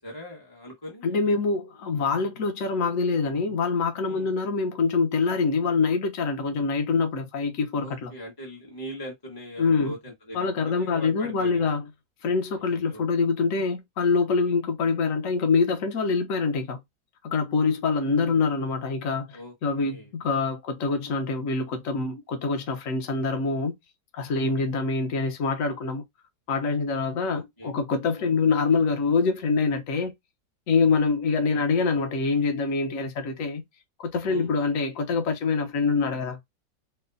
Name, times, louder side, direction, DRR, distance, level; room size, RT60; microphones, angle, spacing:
voice 1, 0.0-1.3 4.0-4.3 7.8-11.7 12.7-13.1 19.3-20.1 24.3-24.6 27.3-27.7 28.2-28.4 31.5-31.7 34.3-34.5, equal, 15° left, 0.9 m, -41 dB
voice 2, 1.0-8.1 9.6-9.9 10.3-11.8 12.2-16.8 17.2-23.7 24.1-26.0 26.5-30.1 30.7-33.6 34.1-36.4, left 4 dB, 50° left, 1.4 m, -25 dB
4.6 x 2.3 x 4.0 m
omnidirectional pair, 1.9 m